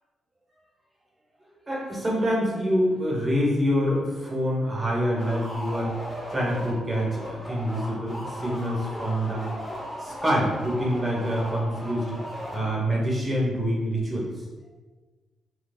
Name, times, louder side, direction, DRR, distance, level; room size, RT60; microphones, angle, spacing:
voice 1, 1.7-5.9 6.3-9.5 10.0-12.1 12.5-14.3, equal, 30° right, -3 dB, 1.1 m, -26 dB
sound 1, 4.7-13.1, equal, 5° right, 1.0 m, -37 dB
4.3 x 2.3 x 2.4 m, 1.3 s
cardioid pair, 80°, 0 cm